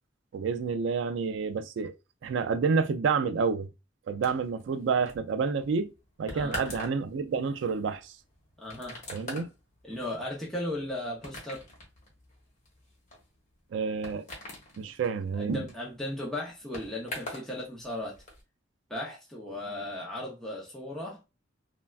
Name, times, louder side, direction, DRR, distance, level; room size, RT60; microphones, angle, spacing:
voice 1, 0.3-1.9 2.2-3.7 4.1-5.9 6.2-8.1 9.1-9.5 13.7-14.3 14.8-15.6, right 5 dB, 70° right, 0.3 m, -29 dB
sound 1, 4.2-17.5 17.8-18.4, left 1 dB, 40° left, 1.0 m, -44 dB
voice 2, 8.6-9.0 9.8-11.6 15.4-18.2 18.9-21.2, left 1 dB, ahead, 0.5 m, -36 dB
3.3 x 2.2 x 2.3 m
head